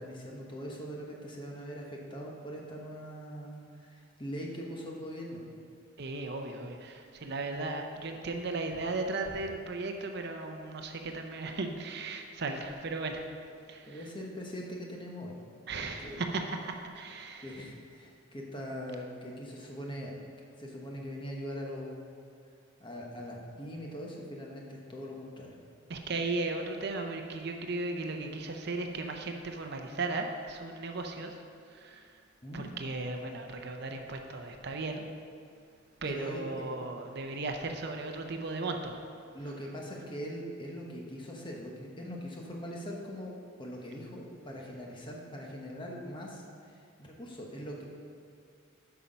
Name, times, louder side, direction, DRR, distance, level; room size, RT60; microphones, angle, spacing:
voice 1, 0.0-5.5 13.9-15.4 16.0-16.2 17.4-20.2 20.6-22.0 22.8-25.6 32.4-32.7 36.0-36.4 39.3-43.3 43.6-47.9, equal, 25° left, -1 dB, 1.1 m, -41 dB
voice 2, 6.0-13.3 13.7-14.0 15.7-17.6 25.9-31.4 31.7-32.2 32.5-35.0 36.0-39.0, right 3 dB, 55° right, 4 dB, 0.6 m, -36 dB
8.3 x 5.8 x 5.2 m, 2.3 s
head